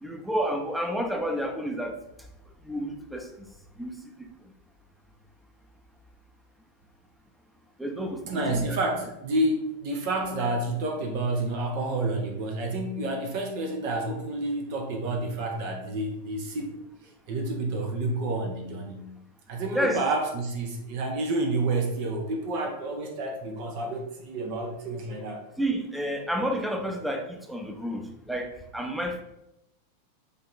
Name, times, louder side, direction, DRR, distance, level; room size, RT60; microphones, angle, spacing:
voice 1, 0.0-2.0 2.6-3.5 3.8-4.3 7.8-8.8 19.7-20.0 25.6-29.2, equal, ahead, 3 dB, 0.9 m, -30 dB
voice 2, 8.3-16.8 17.0-19.1 19.5-25.4, right 2 dB, 45° right, 2 dB, 1.1 m, -29 dB
8.5 x 3.0 x 4.3 m, 0.88 s
figure-of-eight pair, 90°, 0 cm